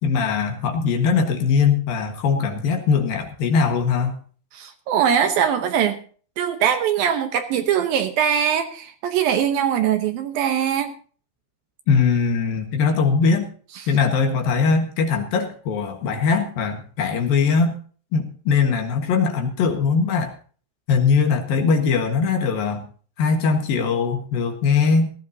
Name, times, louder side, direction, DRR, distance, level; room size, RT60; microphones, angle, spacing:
voice 1, 0.0-4.2 11.9-13.5 13.9-17.8 18.1-20.3 20.9-22.9 23.2-25.1, left 5 dB, 65° left, 5 dB, 3.0 m, -20 dB
voice 2, 4.5-6.0 6.4-10.9, right 8 dB, 70° right, 7 dB, 2.5 m, -21 dB
17.5 x 14.5 x 2.8 m, 0.42 s
omnidirectional pair, 4.9 m